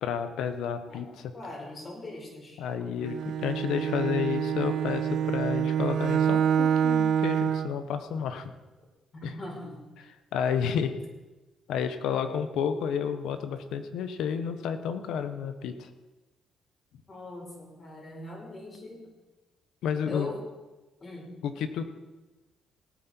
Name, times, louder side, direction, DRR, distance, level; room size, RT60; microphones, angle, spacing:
voice 1, 0.0-1.3 2.6-8.5 9.2-9.4 10.0-10.9 11.7-15.9 19.8-20.3 21.4-21.8, left 7 dB, 85° left, 9 dB, 1.1 m, -31 dB
voice 2, 1.3-2.6 9.1-9.8 17.1-19.1 20.1-20.4 21.0-21.3, left 1 dB, 35° left, -1 dB, 4.8 m, -41 dB
Bowed string instrument, 3.0-7.8, right 8 dB, 65° right, 0.5 m, -26 dB
18.0 x 9.3 x 4.5 m, 1.1 s
cardioid pair, 90°, 0 cm